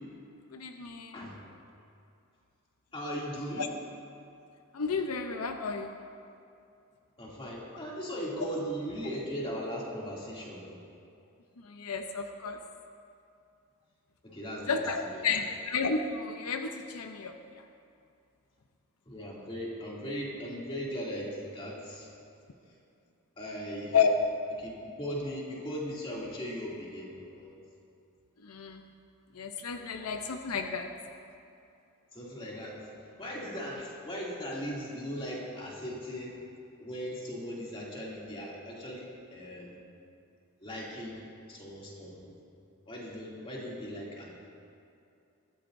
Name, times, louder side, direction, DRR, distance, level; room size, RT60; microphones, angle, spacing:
voice 1, 0.5-1.3 3.6-3.7 4.7-6.0 11.6-12.6 14.7-17.6 23.9-24.2 28.4-28.8 29.3-30.9, left 5 dB, 85° left, 5 dB, 0.7 m, -31 dB
voice 2, 2.9-3.7 7.2-10.8 14.2-15.5 19.1-22.1 23.4-24.0 24.6-27.6 29.8-30.0 32.1-32.9 33.2-36.4 36.8-39.8 40.6-41.2 41.5-42.4 42.9-44.4, equal, 25° left, -5 dB, 2.6 m, -38 dB
21.0 x 13.5 x 2.6 m, 2.6 s
head